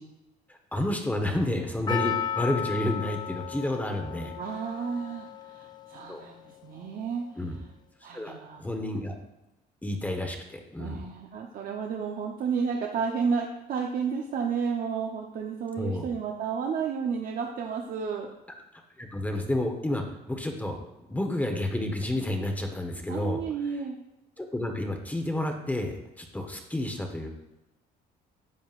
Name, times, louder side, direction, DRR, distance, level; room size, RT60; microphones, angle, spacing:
voice 1, 0.5-4.3 6.1-6.2 7.4-7.6 8.1-9.1 9.8-11.0 15.8-16.1 19.0-20.8 21.1-23.4 24.4-27.3, left 1 dB, 10° left, 3 dB, 1.0 m, -30 dB
Percussion, 1.9-6.2 6.5-6.6, left 8 dB, 25° left, 0.4 m, -35 dB
voice 2, 4.4-7.2 8.0-8.6 10.8-18.3 23.1-24.0, right 6 dB, 55° right, 1 dB, 0.8 m, -31 dB
11.0 x 7.2 x 2.5 m, 0.96 s
cardioid pair, 110°, 17 cm